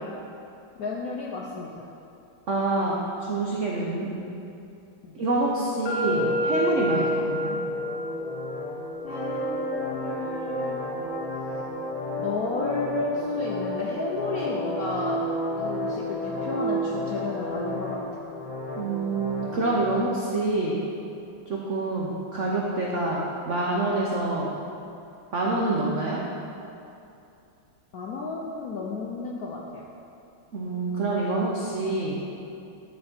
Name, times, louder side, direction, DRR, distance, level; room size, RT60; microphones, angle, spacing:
voice 1, 0.8-1.9 5.0-5.1 9.0-10.8 12.2-15.2 15.6-18.0 27.9-29.8, left 3 dB, 70° left, -2 dB, 0.8 m, -32 dB
voice 2, 2.5-2.9 3.3-4.2 5.1-7.6 18.8-20.8 21.7-24.5 25.3-26.2 30.5-32.2, right 2 dB, 70° right, -3 dB, 0.7 m, -26 dB
sound 1, 5.8-13.7, left 1 dB, 25° left, 1.3 m, -32 dB
sound 2, 6.0-20.0, equal, 40° left, 0.5 m, -32 dB
11.0 x 4.4 x 4.4 m, 2.7 s
omnidirectional pair, 2.3 m